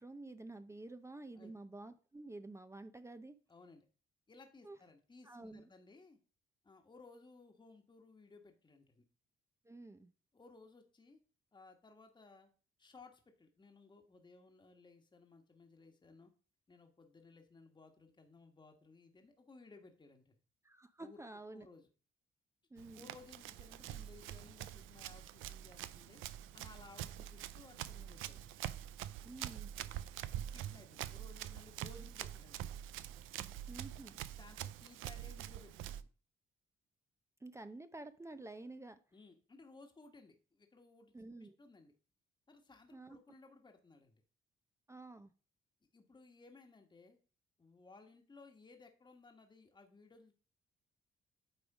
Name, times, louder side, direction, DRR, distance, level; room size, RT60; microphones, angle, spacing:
voice 1, 0.0-3.4 4.6-4.8 5.2-5.7 9.6-10.1 20.6-21.7 22.7-23.1 29.2-29.7 33.7-34.1 37.4-39.0 41.1-41.6 42.9-43.2 44.9-45.3, right 2 dB, 15° right, 10 dB, 0.6 m, -50 dB
voice 2, 3.5-3.9 4.3-6.2 6.6-9.0 10.3-11.2 11.5-12.5 12.8-16.3 16.7-20.4 21.0-21.9 22.9-26.2 26.5-28.6 30.5-32.7 34.4-36.1 39.1-41.1 41.6-41.9 42.5-44.2 45.9-47.2 47.6-50.4, left 3 dB, 25° left, 3 dB, 1.3 m, -60 dB
Run, 22.8-36.0, right 12 dB, 90° right, 0.4 m, -45 dB
9.0 x 3.5 x 4.9 m, 0.38 s
cardioid pair, 90°, 20 cm